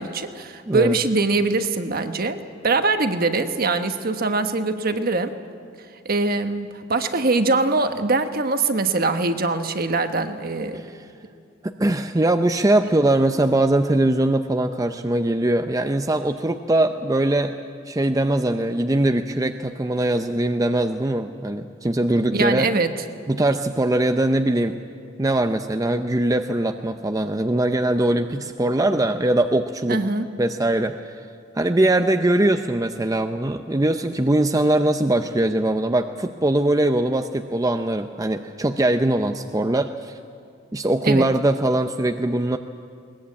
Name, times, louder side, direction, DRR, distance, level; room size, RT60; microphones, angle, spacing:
voice 1, 0.0-2.4 2.6-5.3 6.0-10.8 22.3-22.9 29.9-30.3 41.0-41.3, right 3 dB, 50° right, 8 dB, 1.3 m, -22 dB
voice 2, 10.7-11.1 11.6-17.5 17.9-22.7 23.3-24.8 25.2-30.0 30.4-31.3 31.5-40.2 40.7-42.6, right 1 dB, 20° right, 6 dB, 0.6 m, -21 dB
21.5 x 20.0 x 8.6 m, 2.4 s
head